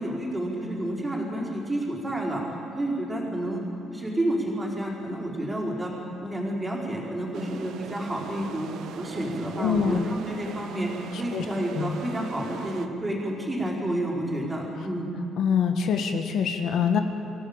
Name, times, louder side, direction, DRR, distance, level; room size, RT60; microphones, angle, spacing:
voice 1, 0.0-2.4 2.7-3.6 3.9-5.9 6.2-8.7 8.9-10.9 11.2-15.1, right 1 dB, 10° right, -3 dB, 4.7 m, -30 dB
sound 1, 7.3-12.9, right 8 dB, 70° right, 1.1 m, -41 dB
voice 2, 9.6-10.1 11.3-11.4 11.7-12.0 15.4-17.0, left 7 dB, 60° left, 6 dB, 1.5 m, -25 dB
25.0 x 16.5 x 8.9 m, 2.7 s
cardioid pair, 150°, 0 cm